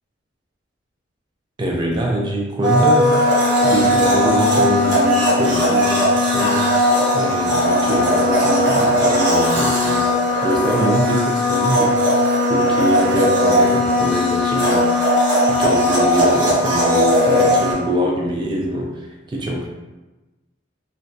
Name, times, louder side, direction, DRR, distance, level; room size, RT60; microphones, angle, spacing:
voice 1, 1.6-6.7 7.1-10.1 10.4-11.9 12.5-14.9 15.5-19.7, right 1 dB, 25° right, -1 dB, 0.3 m, -23 dB
Domestic sounds home sounds, 2.6-17.7, left 1 dB, 70° right, 1.0 m, -17 dB
2.2 x 2.2 x 2.5 m, 1.1 s
head